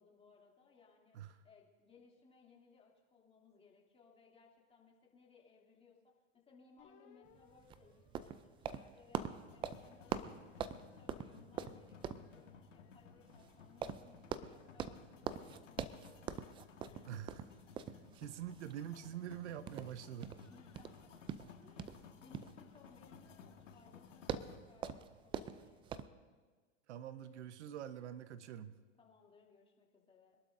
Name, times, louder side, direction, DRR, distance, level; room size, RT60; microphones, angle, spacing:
voice 1, 0.0-9.2 9.5-17.2 20.4-21.1 21.6-25.9 29.0-30.4, left 4 dB, 15° left, -2 dB, 2.8 m, -65 dB
sound 1, 6.8-9.5 10.1-12.5, left 10 dB, 50° left, 2.6 m, -69 dB
sound 2, 7.3-26.1, right 8 dB, 15° right, 0.3 m, -45 dB
sound 3, 9.5-24.6, left 7 dB, 85° left, 1.8 m, -58 dB
voice 2, 17.1-17.4 18.2-20.4 26.9-28.8, right 10 dB, 70° right, 13 dB, 0.9 m, -45 dB
25.5 x 11.5 x 2.6 m, 1.4 s
hypercardioid pair, 115°, 36 cm